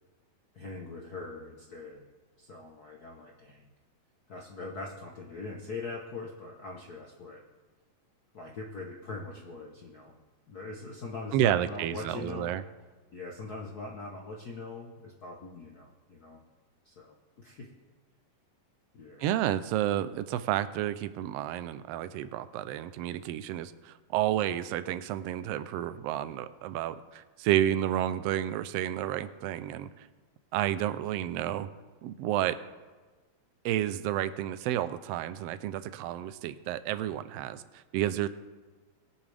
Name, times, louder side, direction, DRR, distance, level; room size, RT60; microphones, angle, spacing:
voice 1, 0.5-2.1 2.4-3.7 4.3-7.4 8.3-10.2 10.5-12.6 13.1-16.4 16.8-17.7 18.9-19.3, left 3 dB, 85° left, 0 dB, 0.8 m, -42 dB
voice 2, 11.3-12.6 19.2-30.1 30.5-31.7 32.0-32.6 33.6-38.3, right 12 dB, 85° right, 12 dB, 1.4 m, -30 dB
21.0 x 7.1 x 3.4 m, 1.3 s
omnidirectional pair, 3.3 m